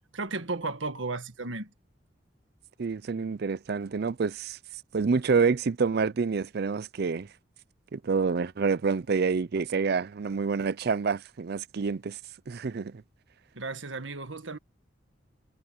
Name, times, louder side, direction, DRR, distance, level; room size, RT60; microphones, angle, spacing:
voice 1, 0.1-1.7 13.5-14.6, right 3 dB, 90° right, 1.7 m, -34 dB
voice 2, 2.8-4.6 4.9-7.3 7.9-12.2 12.5-13.0, right 5 dB, 55° right, 0.5 m, -27 dB
head